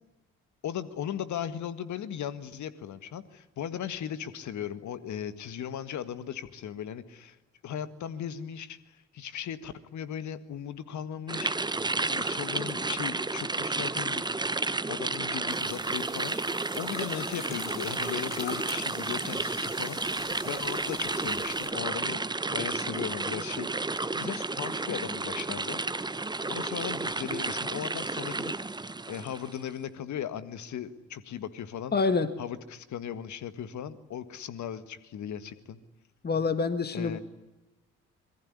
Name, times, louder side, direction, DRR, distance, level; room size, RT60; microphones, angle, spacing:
voice 1, 0.6-7.4 7.6-11.6 12.1-14.3 14.9-22.2 22.5-23.7 24.1-25.8 26.5-28.5 29.1-31.9 32.4-35.8 36.9-37.2, left 9 dB, 50° left, 13 dB, 1.8 m, -37 dB
sound 1, 11.3-29.6, right 3 dB, 10° right, 1.0 m, -32 dB
sound 2, 15.5-21.7, left 4 dB, 65° left, 4.8 m, -45 dB
voice 2, 31.9-32.3 36.2-37.2, left 4 dB, 25° left, 11 dB, 1.8 m, -26 dB
26.5 x 22.5 x 10.0 m, 1.0 s
figure-of-eight pair, 45°, 36 cm